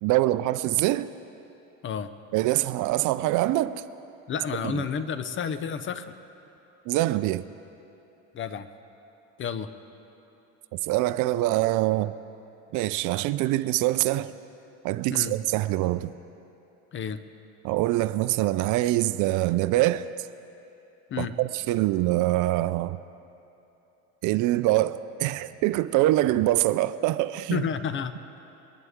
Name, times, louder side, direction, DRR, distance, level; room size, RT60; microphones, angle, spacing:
voice 1, 0.0-1.1 2.3-3.7 4.6-4.8 6.9-7.4 10.8-12.1 12.7-14.3 14.8-16.1 17.6-20.1 21.2-23.0 24.2-27.6, right 16 dB, 55° right, 0.5 m, -24 dB
voice 2, 4.3-6.2 8.3-8.7 9.4-9.7 15.1-15.3 16.9-17.2 21.1-21.3 27.5-28.4, left 7 dB, 35° left, 0.7 m, -31 dB
22.5 x 11.0 x 3.6 m
supercardioid pair, 110°, 36 cm